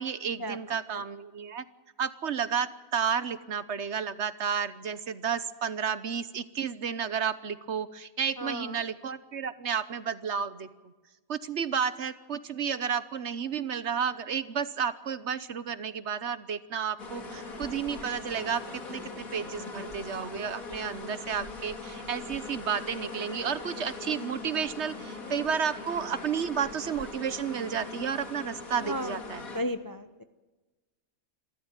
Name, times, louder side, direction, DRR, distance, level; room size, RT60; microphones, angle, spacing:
voice 1, 0.0-1.6 2.0-10.7 11.3-29.4, right 7 dB, 55° right, 14 dB, 1.1 m, -32 dB
voice 2, 8.4-8.8 28.8-30.2, equal, 25° left, 10 dB, 0.5 m, -35 dB
sound 1, 17.0-29.6, left 3 dB, 75° left, 2.9 m, -41 dB
26.5 x 14.0 x 8.9 m, 1.2 s
omnidirectional pair, 1.5 m